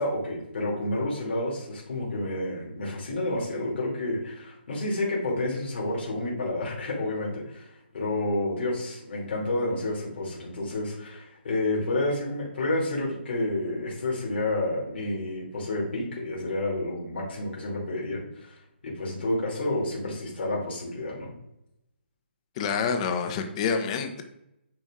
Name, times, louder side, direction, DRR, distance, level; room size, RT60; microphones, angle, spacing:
voice 1, 0.0-7.7 7.9-21.3, left 2 dB, 60° left, -4 dB, 2.7 m, -30 dB
voice 2, 22.6-24.2, left 6 dB, 30° left, 6 dB, 1.0 m, -27 dB
9.0 x 4.2 x 3.7 m, 0.85 s
hypercardioid pair, 150°, 6 cm